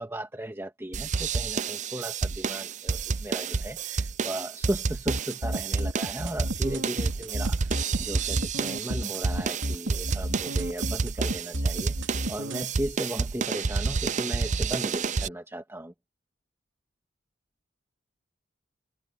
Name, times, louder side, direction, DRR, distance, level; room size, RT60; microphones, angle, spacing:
voice 1, 0.0-15.9, right 1 dB, 15° right, 2.0 m, -36 dB
sound 1, 0.9-15.3, right 5 dB, 40° right, 0.5 m, -30 dB
sound 2, 5.1-12.6, right 1 dB, 80° right, 3.4 m, -31 dB
head